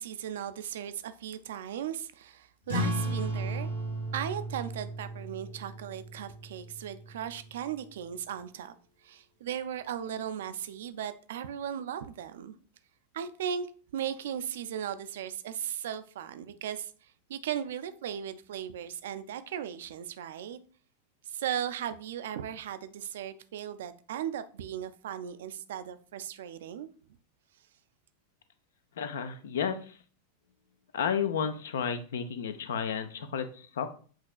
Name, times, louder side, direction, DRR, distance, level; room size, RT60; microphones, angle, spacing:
voice 1, 0.0-3.7 4.1-8.8 9.0-12.5 13.1-13.7 13.9-20.6 21.3-26.9, right 9 dB, 60° right, 0.4 m, -37 dB
sound 1, 2.7-7.7, right 1 dB, 80° left, 1.8 m, -35 dB
voice 2, 29.0-30.0 30.9-33.9, left 7 dB, 60° left, 0.5 m, -32 dB
7.3 x 2.9 x 2.4 m
figure-of-eight pair, 90°, 0 cm